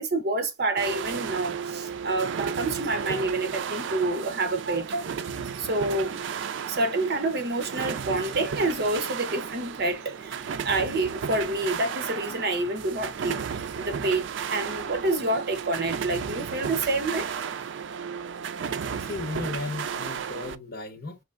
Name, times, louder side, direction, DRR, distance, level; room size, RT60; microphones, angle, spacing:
voice 1, 0.0-5.1 5.6-6.2 6.7-17.3, right 2 dB, 60° right, 0.9 m, -28 dB
sound 1, 0.8-20.6, right 7 dB, 80° right, 0.4 m, -34 dB
voice 2, 19.0-21.2, left 3 dB, 55° left, 1.2 m, -35 dB
5.3 x 3.2 x 2.4 m
head